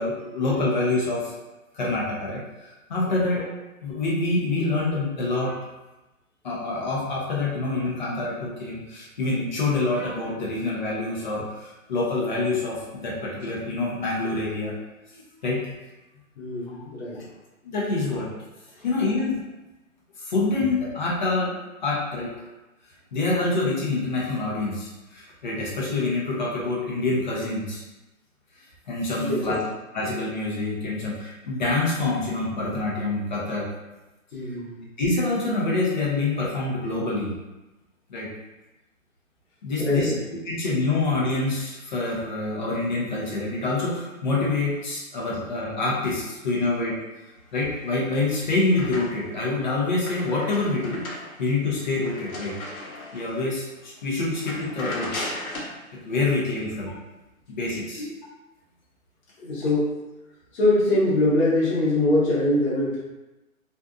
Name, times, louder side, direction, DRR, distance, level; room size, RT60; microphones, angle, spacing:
voice 1, 0.0-1.3 1.7-3.5 3.8-5.6 6.4-14.7 15.1-15.7 17.6-18.3 18.8-19.4 20.2-21.6 21.8-22.3 23.1-27.8 28.9-29.6 29.9-33.7 35.0-37.4 38.1-38.3 39.6-40.1 40.5-47.0 47.5-52.5 53.1-55.3 55.9-56.9 57.5-58.1, left 2 dB, 35° left, -4 dB, 0.6 m, -26 dB
voice 2, 16.4-17.3 18.0-18.1 18.8-18.9 29.2-29.6 34.3-34.8 39.8-40.2 58.0-58.1 59.4-59.9 60.5-63.0, left 1 dB, 50° left, -8 dB, 0.9 m, -23 dB
sound 1, 47.8-49.4 49.8-53.4 53.8-54.0 54.3-55.8, left 1 dB, 80° left, 0.9 m, -36 dB
2.5 x 2.4 x 2.3 m, 1.0 s
hypercardioid pair, 155°, 42 cm